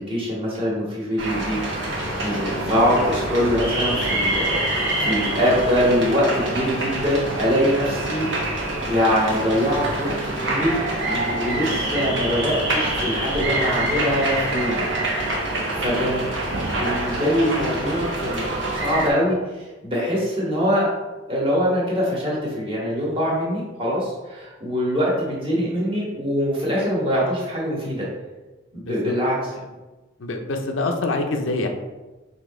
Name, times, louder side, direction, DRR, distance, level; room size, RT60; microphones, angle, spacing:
voice 1, 0.0-1.6 1.9-10.8 11.1-14.8 15.4-16.3 16.7-20.9 21.3-28.1 28.7-29.5, equal, 30° right, -5 dB, 1.4 m, -23 dB
sound 1, 1.2-19.1, right 1 dB, 70° right, 1.1 m, -26 dB
voice 2, 28.7-29.1 29.5-29.6 30.2-31.7, left 2 dB, 85° left, 4 dB, 0.6 m, -26 dB
5.0 x 2.8 x 3.6 m, 1.2 s
head